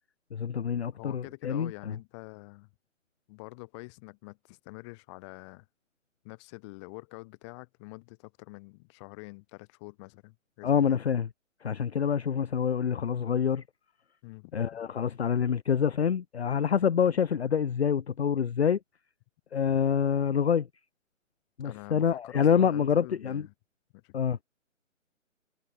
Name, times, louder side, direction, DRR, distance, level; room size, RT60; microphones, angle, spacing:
voice 1, 0.3-2.0 10.6-11.3 11.6-13.6 14.5-18.8 19.5-20.7 21.6-23.5 24.1-24.4, left 7 dB, 50° left, 0.9 m, -26 dB
voice 2, 1.0-2.7 3.3-5.7 6.2-11.0 14.2-14.8 21.6-23.5 23.9-24.1, left 27 dB, 20° left, 3.1 m, -46 dB
figure-of-eight pair, 135°, 40 cm